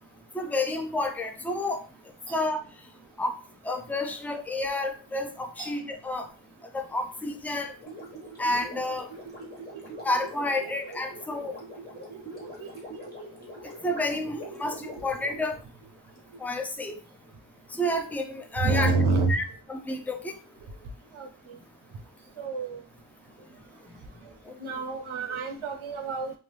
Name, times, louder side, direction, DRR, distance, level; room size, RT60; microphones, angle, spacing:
voice 1, 0.3-1.8 2.3-2.6 3.2-3.3 3.6-6.3 6.7-7.7 8.4-9.1 10.0-11.5 13.8-15.5 16.4-17.0 17.7-18.9 19.3-20.3 24.5-24.6, left 2 dB, 5° left, 5 dB, 0.4 m, -30 dB
Gurgling, 7.8-16.2, equal, 20° left, 1.3 m, -43 dB
voice 2, 18.6-19.4 21.2-21.3 22.4-22.8 24.6-26.3, right 4 dB, 85° right, 5 dB, 0.7 m, -27 dB
2.8 x 2.2 x 3.2 m, 0.36 s
wide cardioid pair, 80°, 47 cm